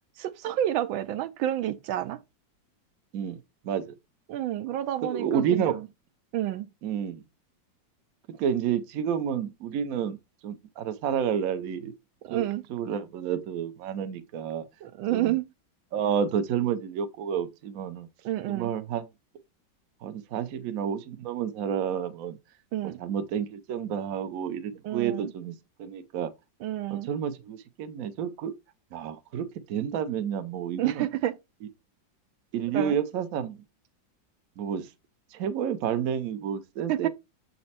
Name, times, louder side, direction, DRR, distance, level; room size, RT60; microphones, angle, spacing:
voice 1, 0.2-2.2 4.3-5.9 6.3-6.7 12.2-12.6 14.8-15.5 18.2-18.7 22.7-23.0 24.8-25.3 26.6-27.1 30.8-31.4 32.7-33.0 36.9-37.1, right 13 dB, 85° right, 1.4 m, -29 dB
voice 2, 5.0-5.8 6.8-7.2 8.4-10.2 10.4-11.9 12.3-12.4 12.7-14.6 15.1-15.3 15.9-18.1 18.5-19.1 20.0-22.4 23.0-25.5 25.8-26.3 26.9-28.5 28.9-31.1 32.5-33.6 34.6-34.9 35.3-37.1, right 8 dB, 60° right, 1.0 m, -30 dB
7.0 x 4.3 x 4.1 m
omnidirectional pair, 2.1 m